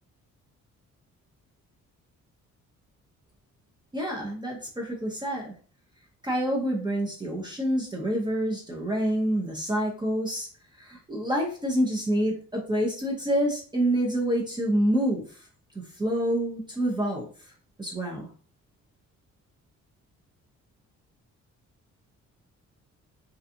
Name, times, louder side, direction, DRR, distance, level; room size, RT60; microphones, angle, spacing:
voice 1, 3.9-5.5 6.2-10.5 10.8-15.4 16.0-17.2 17.8-18.3, right 1 dB, 15° right, -2 dB, 0.6 m, -27 dB
2.5 x 2.3 x 2.7 m, 0.43 s
cardioid pair, 90°, 30 cm